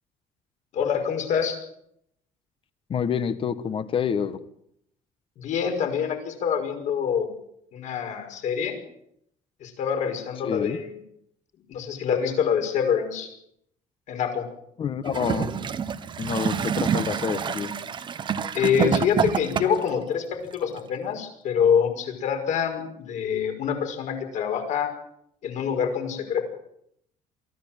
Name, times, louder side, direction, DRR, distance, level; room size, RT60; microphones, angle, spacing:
voice 1, 0.7-1.6 5.4-7.3 7.7-8.8 9.6-10.9 11.7-13.3 14.1-14.5 18.5-20.2 20.5-24.9 25.4-26.5, left 7 dB, 60° left, 5 dB, 5.6 m, -26 dB
voice 2, 2.9-4.4 10.4-10.8 14.8-15.5 16.2-17.7, left 7 dB, 40° left, 13 dB, 1.5 m, -27 dB
Gurgling / Toilet flush, 15.1-19.9 20.8-20.9, right 7 dB, 35° right, 1.2 m, -27 dB
23.5 x 15.5 x 9.0 m, 0.74 s
cardioid pair, 145°, 14 cm